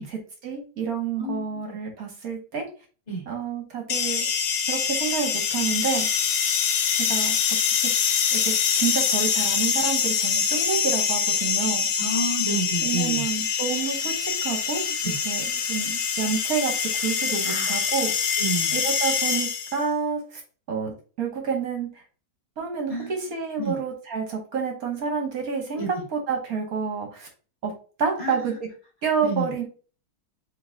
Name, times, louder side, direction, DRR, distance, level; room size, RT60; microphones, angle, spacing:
voice 1, 0.0-2.7 3.3-4.3 4.7-6.1 7.1-7.4 8.3-11.9 12.8-18.1 18.7-20.4 20.7-21.9 22.6-25.8 26.1-27.3 27.6-27.7 28.0-28.7 29.0-29.6, right 6 dB, 55° right, 2 dB, 1.1 m, -29 dB
voice 2, 1.2-1.8 3.1-3.2 12.0-13.2 15.0-15.2 17.4-17.8 18.4-18.7 22.9-23.1 23.6-23.8 25.7-26.0 28.2-28.4 29.2-29.5, right 2 dB, 25° left, -3 dB, 1.3 m, -30 dB
sound 1, 3.9-19.9, left 7 dB, 85° left, 1.4 m, -24 dB
4.5 x 3.0 x 2.6 m, 0.37 s
omnidirectional pair, 2.2 m